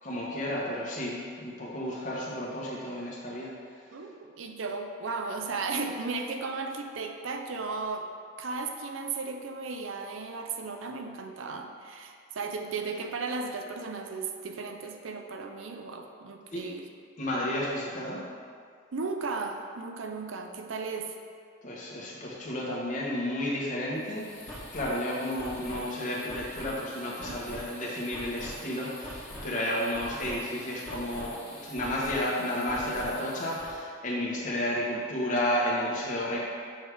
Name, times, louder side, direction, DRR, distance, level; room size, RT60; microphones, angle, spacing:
voice 1, 0.0-3.5 16.5-16.6 17.2-18.2 21.6-36.4, left 1 dB, 40° left, -4 dB, 1.1 m, -32 dB
voice 2, 3.9-8.1 8.4-16.9 18.9-21.2 27.3-27.4 34.2-34.4, right 4 dB, 85° right, 4 dB, 0.5 m, -35 dB
sound 1, 23.9-33.7, equal, 10° left, 1.3 m, -43 dB
6.4 x 3.5 x 4.8 m, 2.2 s
head